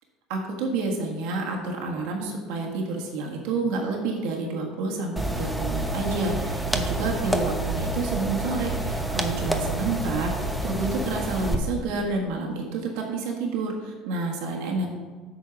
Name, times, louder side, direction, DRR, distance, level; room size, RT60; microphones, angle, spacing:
voice 1, 0.3-14.9, right 3 dB, 70° right, 0 dB, 1.5 m, -29 dB
sound 1, 5.2-11.5, right 1 dB, ahead, 1.0 m, -28 dB
8.2 x 4.5 x 5.8 m, 1.4 s
hypercardioid pair, 70°, 0 cm